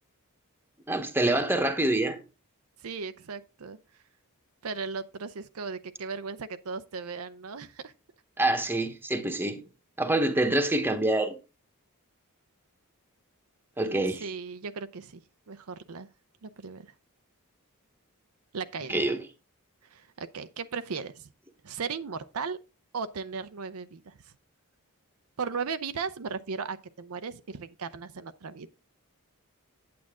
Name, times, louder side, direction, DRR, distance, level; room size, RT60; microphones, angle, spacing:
voice 1, 0.9-2.2 8.4-9.6 10.0-11.4 13.8-14.2 18.9-19.2, right 1 dB, 10° right, 1.1 m, -26 dB
voice 2, 2.8-3.8 4.6-7.9 13.8-15.2 15.5-16.1 16.4-16.9 18.5-19.1 19.9-21.3 21.6-22.6 22.9-24.1 25.4-28.7, right 5 dB, 70° right, 0.6 m, -36 dB
8.6 x 8.5 x 3.6 m
head